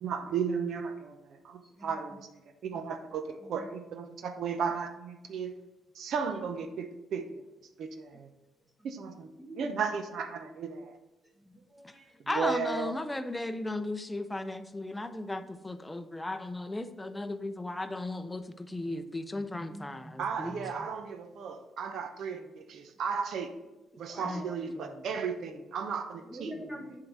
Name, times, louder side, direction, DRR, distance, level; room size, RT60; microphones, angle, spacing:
voice 1, 0.0-2.3 2.6-5.5 5.9-7.4 7.8-8.3 8.8-11.0 12.3-12.9 20.2-23.5 24.0-26.5, right 6 dB, 70° right, 0.7 m, -35 dB
voice 2, 9.4-9.8 11.4-12.1 19.4-20.6 24.0-24.7 26.3-27.0, right 1 dB, 15° right, 1.1 m, -46 dB
voice 3, 12.3-20.6 24.2-24.5 24.7-25.0, left 2 dB, 15° left, 0.6 m, -36 dB
7.7 x 3.8 x 6.3 m
cardioid pair, 90°, 0 cm